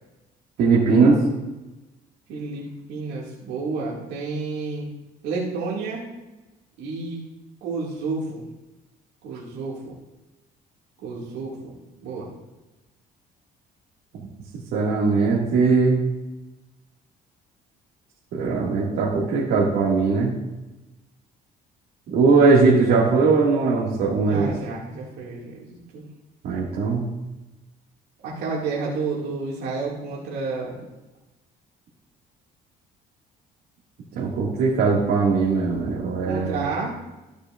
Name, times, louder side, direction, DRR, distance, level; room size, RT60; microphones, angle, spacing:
voice 1, 0.6-1.2 14.7-16.0 18.3-20.3 22.1-24.5 26.4-27.1 34.2-36.6, right 4 dB, 70° right, -6 dB, 2.0 m, -19 dB
voice 2, 2.3-4.9 5.2-6.1 6.8-7.2 7.6-8.5 9.2-10.0 11.0-11.7 12.0-12.3 24.2-26.0 28.2-30.7 36.2-36.9, right 4 dB, 90° right, -5 dB, 2.2 m, -30 dB
14.5 x 6.6 x 2.5 m, 1.1 s
cardioid pair, 110°, 17 cm